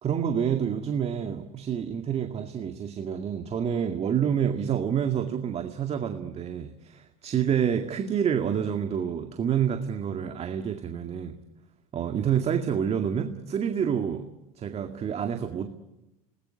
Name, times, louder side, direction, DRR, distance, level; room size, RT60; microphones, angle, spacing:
voice 1, 0.0-11.3 11.9-14.3 14.6-15.7, right 8 dB, 35° right, 2.1 m, -28 dB
27.0 x 20.0 x 9.9 m
hypercardioid pair, 95°, 19 cm